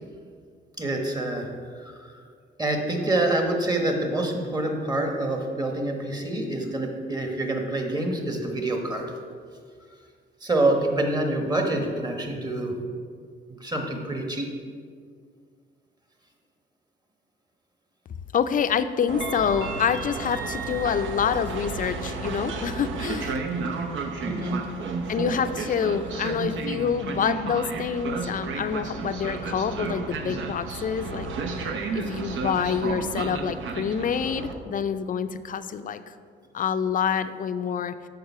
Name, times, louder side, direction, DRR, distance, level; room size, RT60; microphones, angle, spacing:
voice 1, 0.8-1.5 2.6-9.0 10.4-12.7 13.6-14.5 24.2-24.6, right 2 dB, 20° right, 2 dB, 1.2 m, -26 dB
voice 2, 18.3-23.4 25.1-31.3 31.7-36.1 36.5-38.0, left 7 dB, 45° left, 11 dB, 0.4 m, -27 dB
Train, 19.1-34.5, right 4 dB, 75° right, 0.8 m, -32 dB
6.7 x 5.2 x 5.6 m, 2.1 s
cardioid pair, 90°, 20 cm